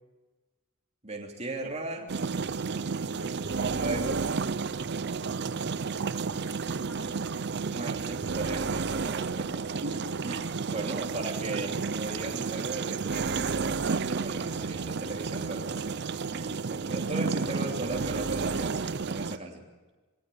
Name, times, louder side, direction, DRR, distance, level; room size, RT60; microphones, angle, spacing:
voice 1, 1.0-2.1 3.6-4.2 7.7-9.7 10.2-15.9 16.3-19.7, right 2 dB, 30° right, 0 dB, 3.1 m, -37 dB
sound 1, 2.1-19.4, right 5 dB, 55° right, 0.6 m, -31 dB
voice 2, 2.9-3.9 6.1-7.4 9.8-10.2, right 1 dB, 75° right, 2 dB, 3.4 m, -43 dB
22.5 x 18.0 x 7.1 m, 1.2 s
head